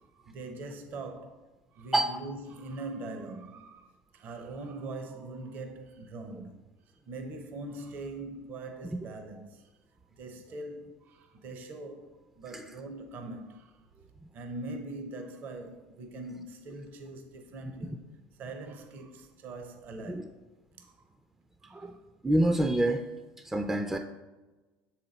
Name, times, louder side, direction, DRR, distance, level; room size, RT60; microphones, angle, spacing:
voice 1, 0.1-1.4 1.7-6.6 7.1-9.7 10.1-13.8 14.3-18.1 18.4-20.4 20.8-20.9 21.6-21.9, right 2 dB, 50° right, 0.7 m, -42 dB
voice 2, 22.2-23.0 23.4-24.0, right 1 dB, 10° right, 0.4 m, -26 dB
6.5 x 4.3 x 3.9 m
supercardioid pair, 95°, 4 cm